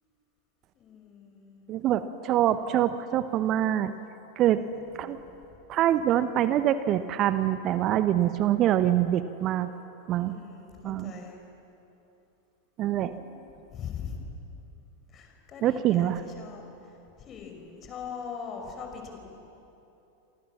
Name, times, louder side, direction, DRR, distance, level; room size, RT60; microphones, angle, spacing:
voice 1, 0.7-1.7 4.9-5.2 10.1-11.3 13.1-13.4 13.7-14.2 15.1-16.1 16.4-16.6 17.2-19.2, left 7 dB, 30° left, 3 dB, 5.9 m, -41 dB
voice 2, 1.7-3.9 4.4-4.6 5.0-5.2 5.7-9.7 10.1-10.4 10.8-11.1 12.8-13.1 15.6-16.2, right 12 dB, 35° right, 12 dB, 0.9 m, -25 dB
28.0 x 26.5 x 7.4 m, 2.9 s
figure-of-eight pair, 90°, 0 cm